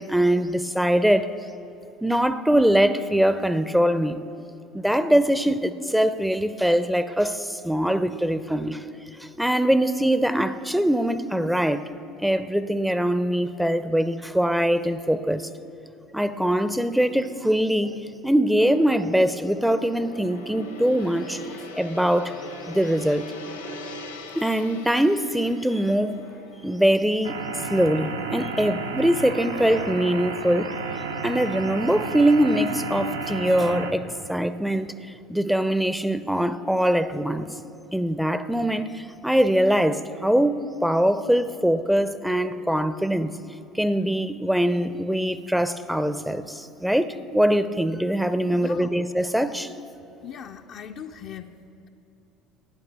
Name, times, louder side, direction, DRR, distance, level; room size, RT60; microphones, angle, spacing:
voice 1, 0.0-1.4 2.0-4.3 4.7-8.8 9.2-11.9 12.2-15.5 16.1-22.3 22.7-23.3 24.4-26.3 26.6-30.7 31.2-37.6 37.9-43.3 43.7-49.7, equal, ahead, 0.5 m, -23 dB
Gong, 17.1-29.2 29.5-29.8, left 1 dB, 80° left, 1.3 m, -42 dB
sound 1, 27.2-33.9, right 4 dB, 85° right, 0.9 m, -32 dB
voice 2, 48.5-48.9 50.2-51.5, left 8 dB, 50° left, 0.5 m, -38 dB
13.5 x 9.4 x 6.8 m
figure-of-eight pair, 65°, 0 cm